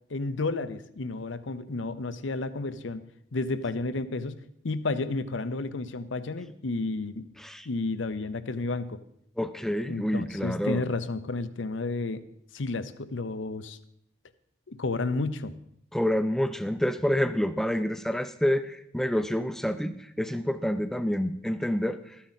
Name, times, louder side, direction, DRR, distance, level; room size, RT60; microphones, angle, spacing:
voice 1, 0.1-3.0 3.3-4.4 4.6-7.2 7.7-9.0 9.9-12.2 12.5-13.8 14.7-15.5, left 3 dB, 75° left, 14 dB, 0.7 m, -31 dB
voice 2, 9.4-10.8 15.9-19.9 20.2-22.0, equal, ahead, 11 dB, 0.5 m, -28 dB
13.0 x 10.0 x 4.2 m, 0.73 s
head